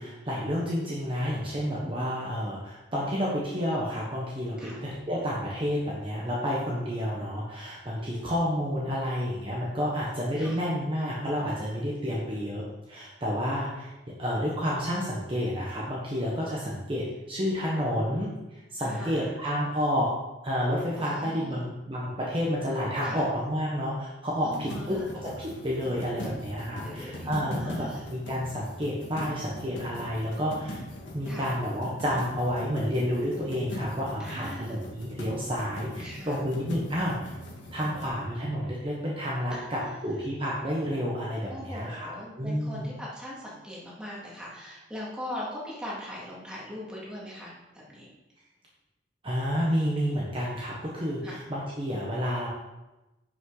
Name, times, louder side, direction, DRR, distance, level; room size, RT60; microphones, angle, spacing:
voice 1, 0.0-20.1 20.4-25.3 25.6-30.8 31.1-37.3 37.7-42.1 42.4-42.9 49.2-52.5, equal, 30° right, -5 dB, 1.3 m, -30 dB
voice 2, 7.9-8.3 10.4-10.6 12.1-12.5 18.8-19.4 21.0-21.7 23.0-23.3 24.4-25.1 26.7-27.3 27.6-28.0 31.3-31.5 34.2-34.8 36.0-36.4 39.5-40.3 41.5-47.5 47.9-48.1 51.2-51.4, left 1 dB, 5° right, -6 dB, 2.4 m, -41 dB
sound 1, 24.5-38.1, left 1 dB, 80° left, 2.0 m, -40 dB
10.5 x 5.8 x 4.0 m, 1.0 s
head